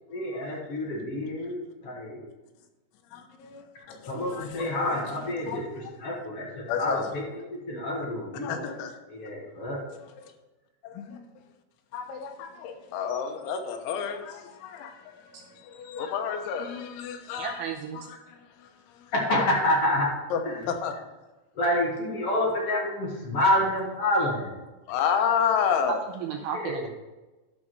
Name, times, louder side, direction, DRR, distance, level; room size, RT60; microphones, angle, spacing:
voice 1, 0.1-2.2 4.1-7.2 7.5-8.6 9.1-9.8 19.1-20.1 20.4-20.6 21.5-24.5 26.5-26.9, left 1 dB, 55° left, -3 dB, 1.7 m, -28 dB
voice 2, 3.1-5.1 5.5-5.6 6.7-7.1 8.4-9.0 10.2-10.3 10.8-11.2 11.9-17.6 17.9-18.7 20.3-20.4 20.7-20.9 24.9-26.0, left 7 dB, 90° left, 5 dB, 3.4 m, -31 dB
voice 3, 17.4-18.1 23.4-23.5 26.2-26.9, right 7 dB, 90° right, 2 dB, 2.2 m, -34 dB
12.0 x 6.1 x 4.7 m, 1.1 s
omnidirectional pair, 5.2 m